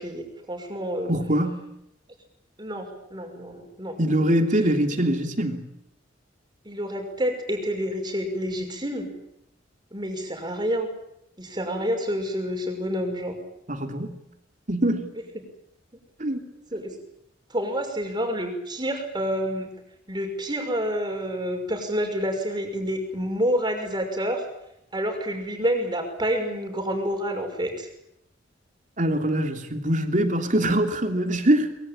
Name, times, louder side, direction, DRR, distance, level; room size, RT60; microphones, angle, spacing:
voice 1, 0.0-1.1 2.6-4.0 6.6-9.1 9.9-10.9 11.4-13.4 16.7-16.9 17.5-19.7 20.1-24.4 24.9-27.9, equal, 25° right, 5 dB, 5.9 m, -28 dB
voice 2, 1.1-1.6 4.0-5.7 13.7-14.2 14.7-15.1 16.2-16.5 29.0-31.8, right 1 dB, 40° right, 5 dB, 3.1 m, -23 dB
24.0 x 22.5 x 8.8 m, 0.79 s
head